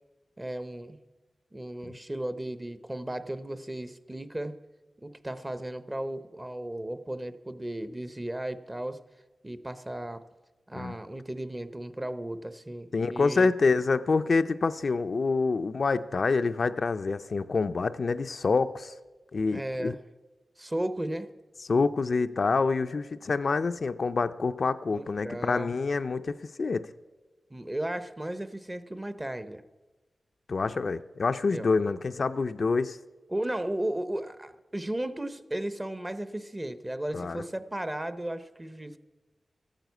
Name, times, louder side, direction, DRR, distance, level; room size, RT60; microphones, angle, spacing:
voice 1, 0.4-1.0 1.5-4.6 5.0-9.0 9.4-10.2 10.7-13.5 19.5-20.0 20.6-21.3 24.9-25.7 27.5-29.6 31.5-31.7 33.3-39.0, right 1 dB, 15° right, 12 dB, 0.7 m, -35 dB
voice 2, 12.9-18.9 19.3-20.0 21.7-26.9 30.5-33.0 37.1-37.4, left 4 dB, 55° left, 9 dB, 0.4 m, -27 dB
14.0 x 9.0 x 8.1 m, 1.2 s
wide cardioid pair, 105°, 0 cm